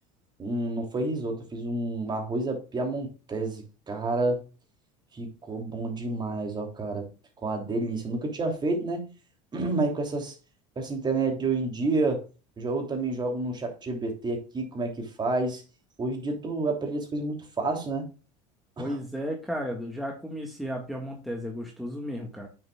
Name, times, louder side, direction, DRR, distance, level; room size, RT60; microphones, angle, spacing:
voice 1, 0.4-4.4 5.1-7.1 7.4-9.1 9.5-10.3 10.8-12.2 12.6-15.6 16.0-18.1 18.8-18.9, right 2 dB, 25° right, 3.0 m, -29 dB
voice 2, 18.8-22.5, equal, ahead, 1.7 m, -34 dB
8.7 x 6.9 x 2.4 m
supercardioid pair, 105°, 16 cm